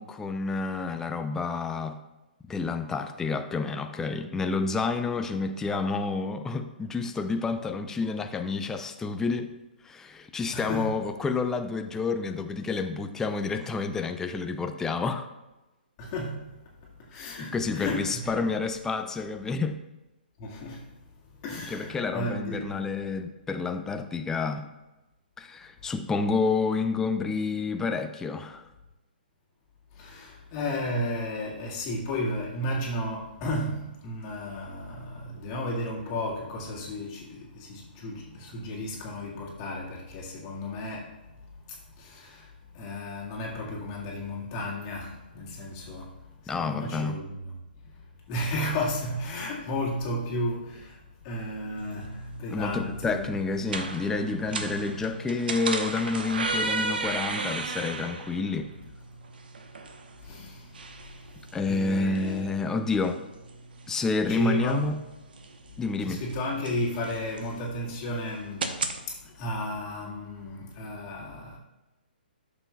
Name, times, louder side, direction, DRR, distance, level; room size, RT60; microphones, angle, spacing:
voice 1, 0.0-2.0 2.5-9.5 9.8-15.3 17.1-19.8 21.7-24.7 25.4-28.7 46.5-47.2 52.5-58.7 61.5-63.2 63.9-65.0 65.8-66.2, left 4 dB, 10° left, 0.5 m, -29 dB
voice 2, 10.5-11.0 16.0-16.5 16.8-18.5 20.4-21.0 21.4-22.9 29.9-41.2 41.6-47.5 47.8-47.9 48.3-53.2 60.2-60.8 61.4-62.8 64.3-65.0 66.0-71.6, left 1 dB, 35° left, 1.9 m, -34 dB
sound 1, 51.8-69.0, right 3 dB, 70° right, 1.0 m, -36 dB
12.5 x 6.8 x 2.3 m
figure-of-eight pair, 130°, 5 cm